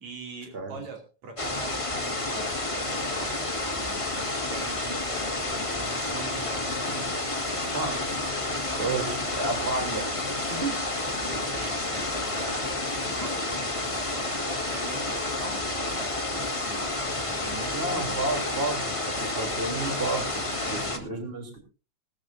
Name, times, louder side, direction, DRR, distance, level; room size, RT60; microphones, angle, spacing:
voice 1, 0.0-8.0 8.4-9.7 10.6-18.3 20.6-20.9, right 4 dB, 65° right, 2 dB, 4.0 m, -43 dB
sound 1, 1.4-21.0, left 2 dB, 15° left, 1.3 m, -30 dB
voice 2, 8.8-10.1 10.5-10.8 17.7-21.6, right 3 dB, 20° right, 3 dB, 3.2 m, -31 dB
20.0 x 13.5 x 2.7 m, 0.34 s
omnidirectional pair, 3.4 m